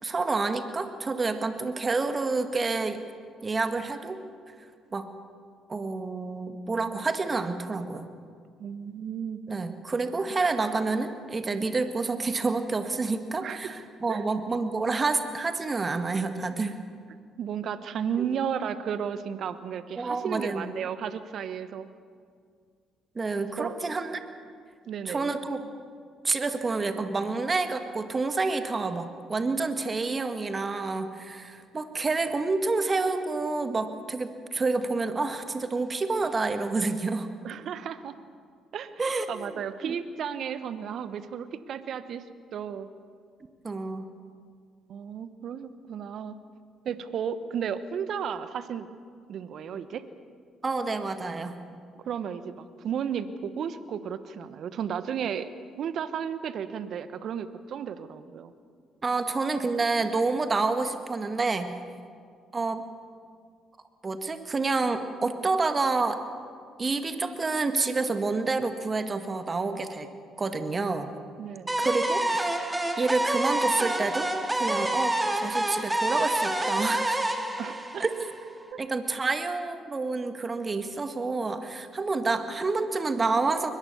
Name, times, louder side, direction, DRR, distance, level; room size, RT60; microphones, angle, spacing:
voice 1, 0.0-3.0 3.4-4.2 4.9-5.1 5.7-8.1 9.5-16.8 18.2-18.3 20.0-20.7 23.2-24.2 25.1-25.7 26.2-37.3 39.0-39.9 43.6-44.1 50.6-51.5 59.0-61.7 62.5-62.8 64.0-66.2 66.8-70.1 70.4-71.1 71.8-72.6 73.0-77.2 78.0-78.3 78.8-83.7, right 3 dB, 35° right, 8 dB, 1.9 m, -28 dB
voice 2, 8.6-9.4 13.4-13.7 14.1-14.2 17.4-21.9 23.6-24.0 24.9-25.3 37.4-38.1 38.7-42.2 42.5-42.9 44.9-46.3 46.8-48.9 49.3-50.0 52.0-52.5 52.8-55.5 55.8-58.5 71.4-71.9 77.6-78.0, right 8 dB, 60° right, 13 dB, 1.1 m, -33 dB
sound 1, 71.7-78.6, right 1 dB, 15° right, 2.6 m, -28 dB
21.5 x 21.0 x 7.0 m, 2.1 s
hypercardioid pair, 45°, 0 cm